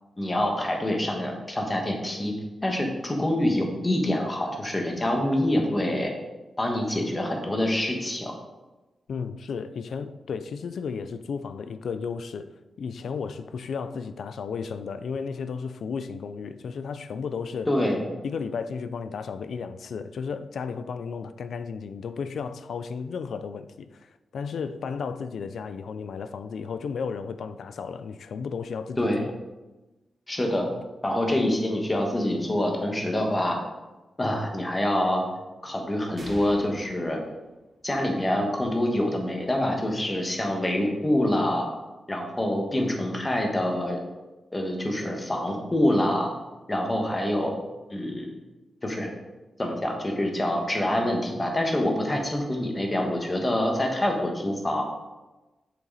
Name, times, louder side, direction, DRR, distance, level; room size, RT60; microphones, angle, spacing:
voice 1, 0.2-2.3 2.6-6.1 6.6-8.3 17.7-18.0 29.0-29.2 30.3-30.7 31.0-33.6 34.2-35.3 35.6-37.2 37.8-41.7 42.1-44.0 44.5-46.3 46.7-47.5 47.9-48.3 48.8-49.1 49.6-54.8, left 1 dB, 20° left, 1.5 m, -26 dB
voice 2, 9.1-12.5 12.8-17.7 18.2-29.4, left 5 dB, 80° left, 0.4 m, -34 dB
sound 1, 36.2-38.1, right 1 dB, 30° right, 2.0 m, -45 dB
7.9 x 6.7 x 4.1 m
wide cardioid pair, 130°, 0 cm